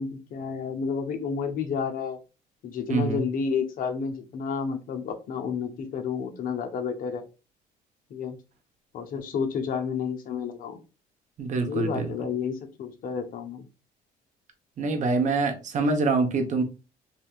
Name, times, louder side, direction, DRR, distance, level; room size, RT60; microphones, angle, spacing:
voice 1, 0.0-2.2 2.6-7.2 8.1-8.4 8.9-10.8 11.7-13.7, left 6 dB, 55° left, 0.8 m, -30 dB
voice 2, 2.9-3.2 11.4-11.9 14.8-16.6, right 3 dB, 45° right, 0.8 m, -25 dB
3.4 x 2.7 x 2.3 m
cardioid pair, 110°, 17 cm